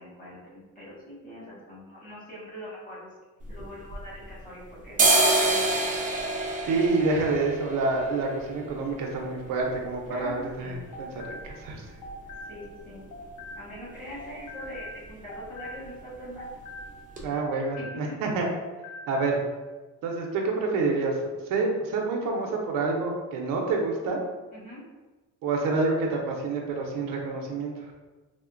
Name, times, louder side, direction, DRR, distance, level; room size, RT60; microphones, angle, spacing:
voice 1, 0.0-3.1 3.5-5.9 10.1-10.9 12.5-13.0 13.6-16.5 17.7-18.0 24.5-24.8, equal, 25° left, -8 dB, 1.4 m, -43 dB
sound 1, 3.4-4.5 4.8-12.5 12.8-12.9 13.2-13.8 14.1-14.3 14.6-14.8 15.1-15.8 16.1-16.3 16.8-16.9 17.2-17.3, right 2 dB, 25° right, 0.4 m, -28 dB
voice 2, 6.7-11.8 17.2-18.5 19.1-19.4 20.0-24.2 25.4-27.7, right 3 dB, 90° right, 1 dB, 0.6 m, -28 dB
sound 2, 10.7-13.9 14.2-18.3 18.6-19.4, left 1 dB, 70° left, 0.5 m, -43 dB
3.5 x 2.1 x 2.5 m, 1.2 s
cardioid pair, 140°, 32 cm